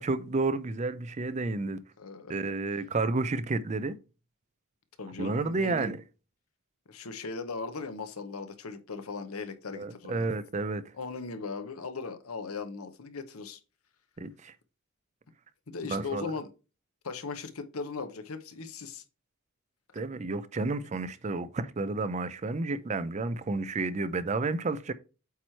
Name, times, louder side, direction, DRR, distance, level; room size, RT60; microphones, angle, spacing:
voice 1, 0.0-1.8 2.3-4.0 5.2-6.0 9.7-10.9 14.2-14.5 15.9-16.3 19.9-24.9, right 3 dB, 35° right, 0.5 m, -31 dB
voice 2, 2.0-2.4 5.0-5.9 6.9-10.3 10.9-13.6 15.7-16.5 17.0-19.0, left 4 dB, 85° left, 0.9 m, -38 dB
8.3 x 3.1 x 4.4 m
head